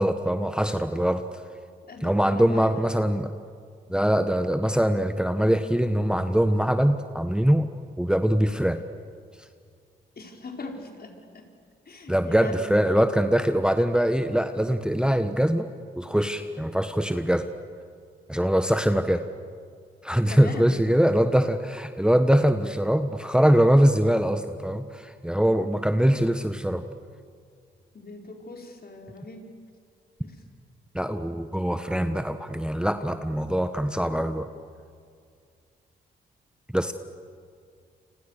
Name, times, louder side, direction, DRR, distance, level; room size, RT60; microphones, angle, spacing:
voice 1, 0.0-1.4 2.0-3.3 3.9-7.7 8.0-8.8 12.1-15.7 15.9-17.5 18.3-19.2 20.0-26.8 30.9-34.5 36.7-36.9, equal, 5° right, 8 dB, 1.4 m, -23 dB
voice 2, 1.9-2.8 10.1-11.5 11.8-12.7 20.3-20.9 27.9-29.5 30.2-30.4, left 3 dB, 50° left, 2 dB, 5.1 m, -40 dB
29.5 x 26.5 x 6.8 m, 2.2 s
supercardioid pair, 50°, 21 cm